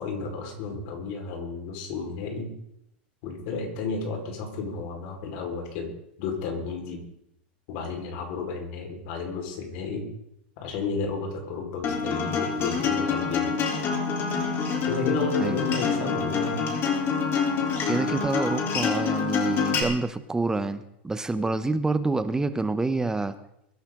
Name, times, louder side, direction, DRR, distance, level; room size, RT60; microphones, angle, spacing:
voice 1, 0.0-2.5 3.2-5.9 6.2-7.0 7.7-10.1 10.6-13.8 14.8-16.6 21.4-21.5, left 4 dB, 60° left, 2 dB, 5.0 m, -32 dB
Acoustic guitar, 11.8-19.8, left 5 dB, 40° left, 4.1 m, -26 dB
voice 2, 17.9-23.4, right 3 dB, 10° right, 12 dB, 1.1 m, -27 dB
23.0 x 11.5 x 4.0 m, 0.79 s
hypercardioid pair, 110°, 6 cm